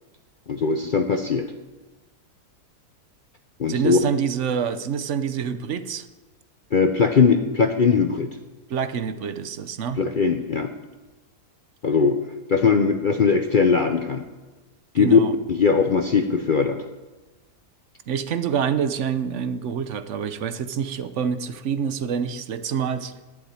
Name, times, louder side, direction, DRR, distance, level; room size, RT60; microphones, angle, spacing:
voice 1, 0.5-1.5 3.6-4.0 6.7-8.3 10.0-10.7 11.8-12.2 12.5-14.2 14.9-15.2 15.5-16.8, left 5 dB, 50° left, 6 dB, 0.6 m, -20 dB
voice 2, 3.7-6.1 8.7-10.0 15.0-15.4 18.1-23.1, right 7 dB, 55° right, 12 dB, 0.9 m, -26 dB
11.5 x 7.2 x 9.5 m, 1.2 s
omnidirectional pair, 1.7 m